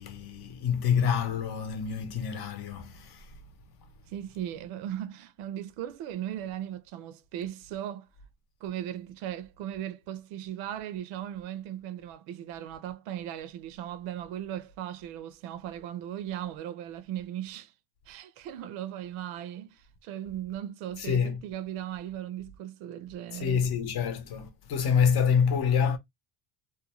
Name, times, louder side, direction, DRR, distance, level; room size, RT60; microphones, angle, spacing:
voice 1, 0.0-3.3 21.0-21.4 23.3-26.0, left 7 dB, 50° left, 0.7 m, -27 dB
voice 2, 4.1-8.1 8.6-17.7 18.1-23.7, right 11 dB, 80° right, 0.6 m, -37 dB
2.4 x 2.2 x 2.9 m
cardioid pair, 135°, 48 cm